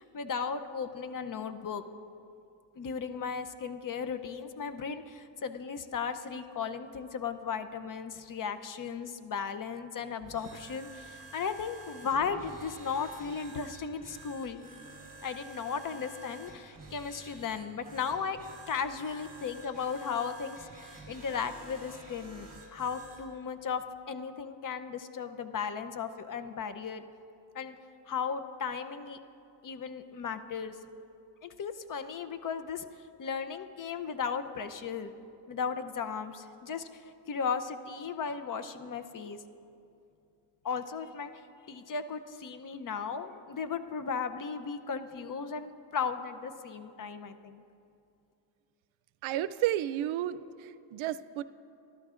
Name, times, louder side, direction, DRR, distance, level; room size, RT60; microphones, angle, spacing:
voice 1, 0.0-1.8 2.8-14.7 15.2-18.4 18.7-27.0 27.5-27.8 28.1-29.2 29.6-30.8 31.4-32.8 33.2-35.1 35.5-39.4 40.6-41.3 41.7-47.6, left 6 dB, 45° left, 10 dB, 0.7 m, -36 dB
sound 1, 10.2-23.3, right 3 dB, 20° right, 3.4 m, -50 dB
voice 2, 49.2-51.4, right 13 dB, 80° right, 15 dB, 0.5 m, -32 dB
28.0 x 13.0 x 2.5 m, 2.6 s
cardioid pair, 100°, 47 cm